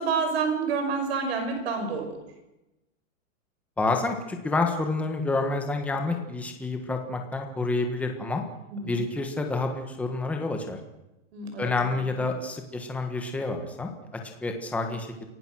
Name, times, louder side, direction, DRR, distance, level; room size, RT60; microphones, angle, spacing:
voice 1, 0.0-2.2 8.7-9.0 11.3-12.0, right 5 dB, 50° right, 6 dB, 6.0 m, -28 dB
voice 2, 3.8-8.4 8.8-10.8 11.6-15.3, left 3 dB, 5° left, 4 dB, 1.4 m, -29 dB
28.5 x 17.0 x 6.3 m, 0.95 s
supercardioid pair, 175°, 40 cm